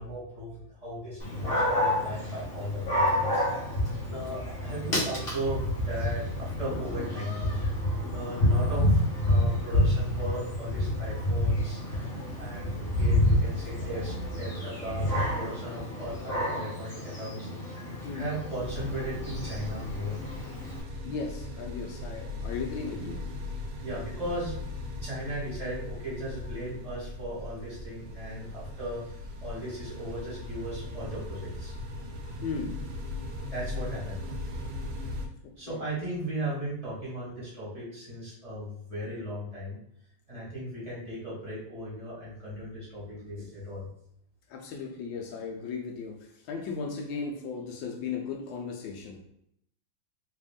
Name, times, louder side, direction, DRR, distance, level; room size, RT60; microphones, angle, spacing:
voice 1, 0.0-3.5 4.1-11.8 12.3-17.8 18.1-20.2 23.8-24.5 25.0-31.8 33.5-34.2 35.6-39.8 40.3-43.9, equal, 20° right, -8 dB, 1.2 m, -37 dB
Dog, 1.2-20.8, left 1 dB, 45° left, 1.1 m, -29 dB
voice 2, 4.1-4.4 18.0-18.3 21.0-23.3 32.3-32.8 35.4-35.8 44.5-49.2, left 5 dB, 75° left, 2 dB, 1.2 m, -36 dB
sound 1, 18.6-35.3, left 2 dB, 75° right, 1.3 m, -38 dB
3.4 x 2.5 x 3.5 m, 0.71 s
omnidirectional pair, 2.3 m